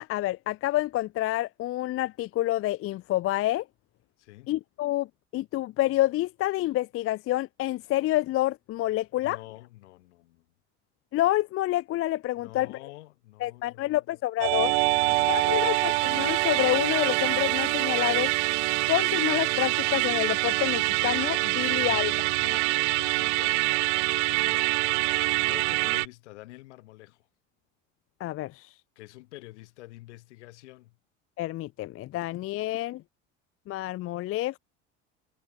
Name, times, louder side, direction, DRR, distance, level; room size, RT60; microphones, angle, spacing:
voice 1, 0.0-3.7 4.5-5.1 5.3-9.4 11.1-12.7 13.4-14.8 15.3-18.3 18.9-22.1 28.2-28.7 31.4-33.0 33.7-34.6, left 15 dB, 40° left, 0.5 m, -28 dB
voice 2, 4.2-4.5 9.2-10.5 12.3-14.0 14.9-15.8 21.6-23.6 24.2-27.3 29.0-31.0, left 18 dB, 80° left, 7.5 m, -48 dB
Musical instrument, 14.4-26.1, right 24 dB, 75° right, 0.6 m, -25 dB
hypercardioid pair, 75°, 35 cm